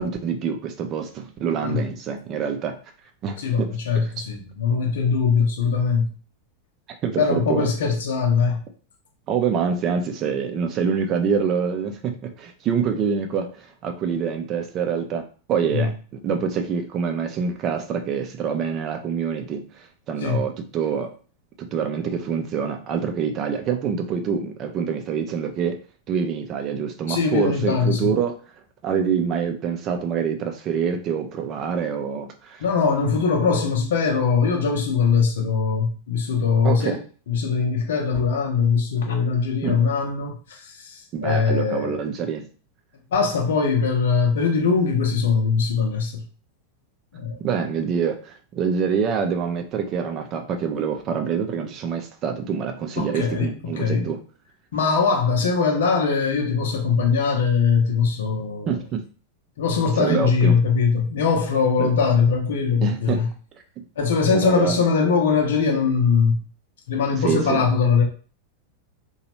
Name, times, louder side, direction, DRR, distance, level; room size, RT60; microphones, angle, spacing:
voice 1, 0.0-2.8 3.2-3.7 3.9-4.1 7.0-7.7 9.3-15.9 16.2-21.1 21.7-25.8 26.1-28.4 28.8-32.6 36.6-37.0 39.6-39.8 41.1-42.5 47.4-54.2 58.7-59.0 60.0-60.6 61.8-61.9 62.8-63.3 64.3-64.8 67.2-67.7, right 6 dB, 35° right, 0.5 m, -26 dB
voice 2, 3.4-6.1 7.2-8.6 15.7-15.9 20.2-20.5 27.1-28.1 32.6-37.0 37.3-42.0 43.1-46.2 47.1-47.4 53.0-54.1 54.7-58.7 59.6-63.3 64.0-66.4 66.9-68.0, left 5 dB, 60° left, 0.7 m, -21 dB
2.9 x 2.3 x 3.0 m
figure-of-eight pair, 90°, 0 cm